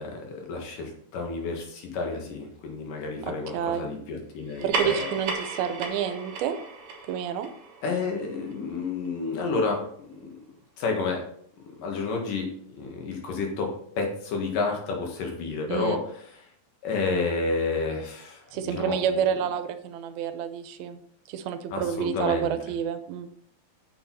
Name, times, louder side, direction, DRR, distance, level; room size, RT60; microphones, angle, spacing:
voice 1, 0.0-5.1 7.8-10.4 10.8-11.3 11.6-16.2 16.8-19.3 21.7-22.5, left 4 dB, 65° left, 1 dB, 3.2 m, -30 dB
voice 2, 3.2-3.9 4.6-6.6 7.1-7.5 15.7-16.0 18.5-21.0 21.3-23.3, right 8 dB, 85° right, 9 dB, 2.5 m, -29 dB
sound 1, 4.5-9.3, right 3 dB, 50° right, 1.9 m, -35 dB
8.8 x 6.9 x 4.1 m, 0.63 s
omnidirectional pair, 4.3 m